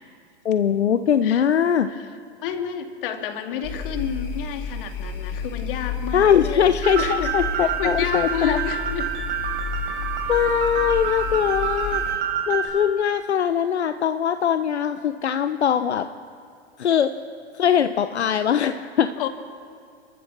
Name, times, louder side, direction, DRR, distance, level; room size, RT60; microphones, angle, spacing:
voice 1, 0.4-1.9 6.1-8.6 10.3-12.2 12.5-16.1 16.8-17.1 17.5-19.1, left 8 dB, 80° left, 10 dB, 0.9 m, -21 dB
voice 2, 2.4-9.1 19.2-19.3, left 8 dB, 55° left, 6 dB, 2.4 m, -30 dB
sound 1, 3.6-12.2, left 5 dB, 30° left, 3.0 m, -32 dB
sound 2, 6.8-12.7, right 8 dB, 55° right, 5.2 m, -28 dB
29.5 x 14.5 x 6.2 m, 2.3 s
hypercardioid pair, 110°, 33 cm